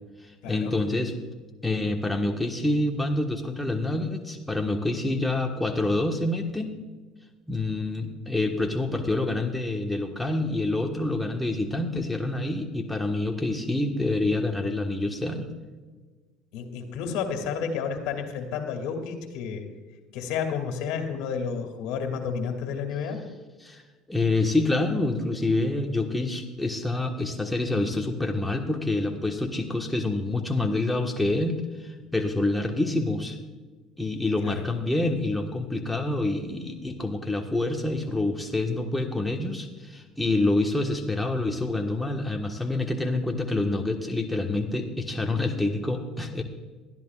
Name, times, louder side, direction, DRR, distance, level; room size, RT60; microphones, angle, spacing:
voice 1, 0.4-1.1 1.6-6.7 7.5-15.5 23.6-23.8 24.1-33.4 34.0-46.4, left 2 dB, 5° left, 2 dB, 1.4 m, -27 dB
voice 2, 16.5-19.7 20.1-23.2 34.4-34.6, left 6 dB, 75° left, 4 dB, 2.4 m, -31 dB
20.0 x 13.0 x 2.5 m, 1.3 s
supercardioid pair, 95°, 0 cm